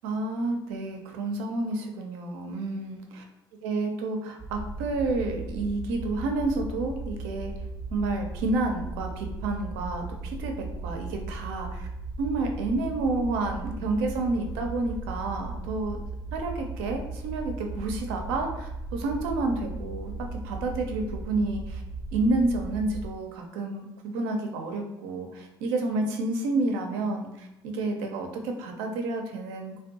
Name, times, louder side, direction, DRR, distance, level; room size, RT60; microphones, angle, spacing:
voice 1, 0.0-3.2 3.6-7.5 7.9-11.9 12.2-16.0 16.3-20.1 20.4-21.8 22.1-29.7, right 2 dB, 75° right, 3 dB, 0.5 m, -30 dB
sound 1, 4.4-23.1, right 3 dB, 20° right, 0.5 m, -37 dB
2.4 x 2.1 x 2.6 m, 0.91 s
hypercardioid pair, 60°, 12 cm